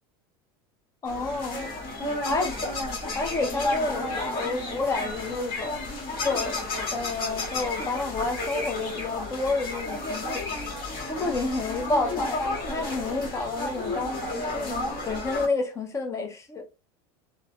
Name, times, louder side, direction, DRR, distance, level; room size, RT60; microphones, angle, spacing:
voice 1, 1.0-1.8 2.3-2.7 3.1-5.8 6.2-6.6 6.9-10.4 11.0-12.4 12.7-14.2 14.5-16.6, left 3 dB, 25° left, 0.6 m, -29 dB
sound 1, 1.1-15.5, left 2 dB, 45° left, 1.3 m, -32 dB
3.3 x 2.0 x 2.3 m
supercardioid pair, 115°, 12 cm